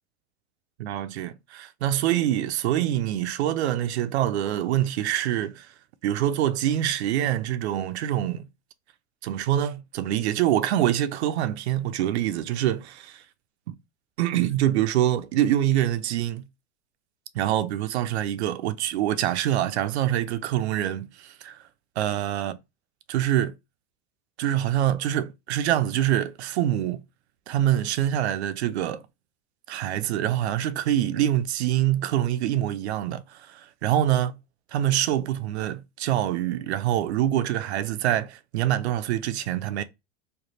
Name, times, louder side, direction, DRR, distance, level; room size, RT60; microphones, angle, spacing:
voice 1, 0.8-5.7 6.0-8.5 9.2-13.2 13.7-13.8 14.2-16.5 17.3-21.6 22.0-22.5 23.1-23.5 24.4-27.0 27.5-29.0 29.7-34.3 34.7-39.8, right 12 dB, 85° right, 0.5 m, -25 dB
3.2 x 2.3 x 4.0 m
supercardioid pair, 115°, 32 cm